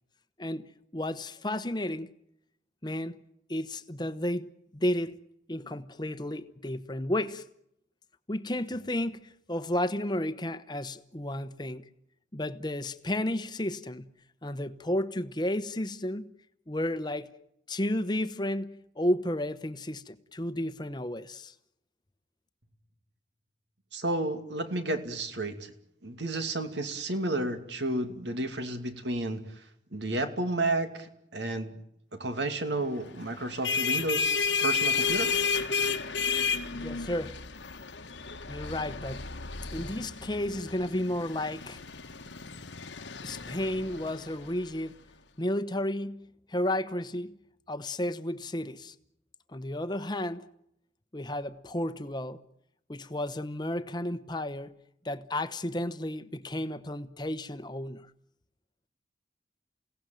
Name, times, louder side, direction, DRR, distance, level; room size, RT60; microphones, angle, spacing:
voice 1, 0.4-2.1 2.8-3.2 3.5-5.2 5.5-7.4 8.3-11.9 12.3-14.1 14.4-16.3 16.7-17.3 17.7-21.5 36.7-37.4 38.5-39.3 39.7-41.8 43.2-44.9 45.4-47.4 47.7-48.9 49.5-50.5 51.1-52.4 52.9-54.7 55.0-58.1, left 1 dB, 25° left, 1.0 m, -32 dB
voice 2, 23.9-25.7 26.0-29.6 29.9-31.8 32.1-35.3, right 2 dB, 75° right, 2.5 m, -32 dB
sound 1, 33.4-44.7, left 5 dB, 80° left, 1.5 m, -32 dB
29.0 x 17.5 x 9.2 m
head